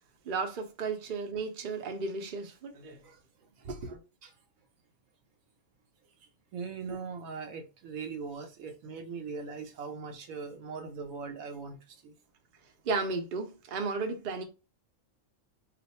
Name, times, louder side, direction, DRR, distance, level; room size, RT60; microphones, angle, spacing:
voice 1, 0.2-3.0 3.6-4.0 6.9-7.0 12.8-14.4, right 4 dB, 50° right, 0.7 m, -34 dB
voice 2, 6.5-12.1, right 5 dB, 75° right, 1.1 m, -40 dB
2.5 x 2.5 x 4.1 m
omnidirectional pair, 1.5 m